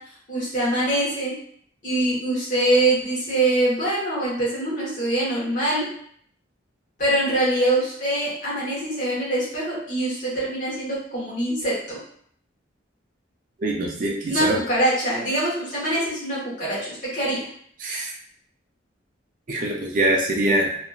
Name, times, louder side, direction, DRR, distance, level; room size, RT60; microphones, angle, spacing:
voice 1, 0.3-1.3 1.8-5.8 7.0-12.0 14.3-17.4, right 1 dB, 40° left, -7 dB, 1.2 m, -24 dB
voice 2, 13.6-14.6 17.8-18.1 19.5-20.8, right 1 dB, 45° right, -1 dB, 0.4 m, -23 dB
2.8 x 2.4 x 2.3 m, 0.63 s
head